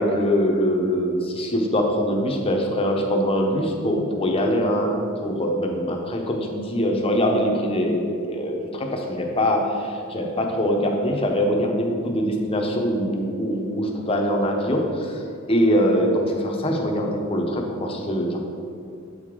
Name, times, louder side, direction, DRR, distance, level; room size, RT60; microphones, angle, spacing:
voice 1, 0.0-15.2 15.5-18.4, equal, 25° left, 1 dB, 0.7 m, -23 dB
7.6 x 4.8 x 3.7 m, 2.4 s
head